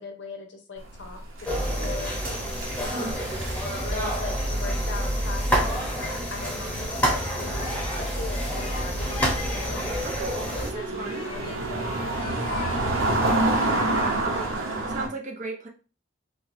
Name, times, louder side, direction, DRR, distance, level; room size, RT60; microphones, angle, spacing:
voice 1, 0.0-2.2 2.8-3.3 3.8-9.9 10.6-12.9, left 4 dB, 60° left, 3 dB, 0.7 m, -40 dB
sound 1, 0.8-6.4 6.7-6.9 7.6-15.1, right 2 dB, 85° right, 0.8 m, -29 dB
sound 2, 1.5-10.7, equal, 5° left, 0.9 m, -28 dB
Speech, 7.5-10.4 11.0-14.2, left 3 dB, 30° left, 0.4 m, -43 dB
voice 2, 10.0-11.2 13.6-13.8 14.2-15.7, right 3 dB, 40° right, 1 dB, 0.6 m, -36 dB
4.4 x 2.2 x 2.6 m, 0.35 s
head